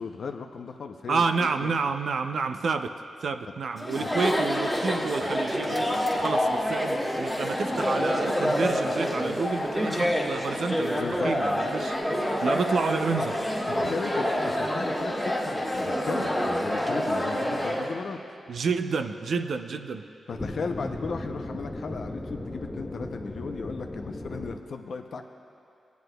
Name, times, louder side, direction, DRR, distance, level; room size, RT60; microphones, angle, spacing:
voice 1, 0.0-1.9 4.0-4.2 11.0-11.3 13.7-18.2 20.3-25.2, left 5 dB, 70° left, 5 dB, 0.5 m, -36 dB
voice 2, 1.1-2.9 3.2-5.9 6.2-12.0 12.4-13.4 18.5-20.0, right 4 dB, 70° right, 7 dB, 0.4 m, -29 dB
Chatter, 3.8-17.9, equal, 5° right, 1.5 m, -27 dB
sound 1, 20.3-24.6, left 1 dB, 15° left, 0.6 m, -36 dB
19.0 x 9.3 x 2.2 m, 2.5 s
wide cardioid pair, 100°, 0 cm